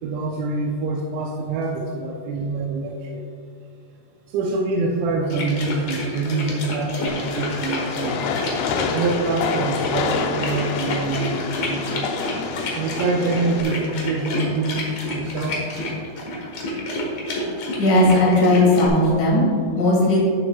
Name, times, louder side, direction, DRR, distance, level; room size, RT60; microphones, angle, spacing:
voice 1, 0.0-3.2 4.3-8.3 8.9-12.1 12.8-15.6 15.9-16.0, right 3 dB, 90° right, -1 dB, 3.1 m, -25 dB
sound 1, 5.3-18.9, left 1 dB, 65° left, 1.6 m, -29 dB
Train, 7.1-13.6, left 5 dB, 85° left, 2.4 m, -27 dB
voice 2, 17.8-20.2, left 1 dB, 50° left, -3 dB, 2.8 m, -17 dB
13.0 x 7.1 x 2.3 m, 2.5 s
omnidirectional pair, 5.1 m